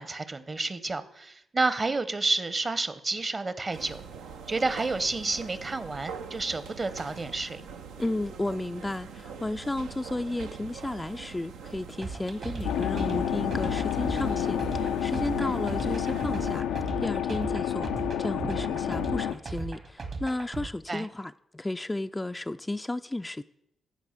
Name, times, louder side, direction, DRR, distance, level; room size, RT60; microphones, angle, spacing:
voice 1, 0.0-4.0 4.5-7.6 15.4-15.6 20.9-21.1, right 3 dB, 40° right, 1.0 m, -30 dB
sound 1, 3.7-16.6, right 6 dB, 80° right, 0.6 m, -43 dB
voice 2, 8.0-23.4, left 2 dB, 20° left, 0.4 m, -33 dB
sound 2, 12.0-20.7, right 4 dB, 60° right, 2.0 m, -37 dB
sound 3, 12.6-19.3, left 10 dB, 80° left, 0.4 m, -29 dB
14.0 x 4.9 x 6.7 m
hypercardioid pair, 40°, 0 cm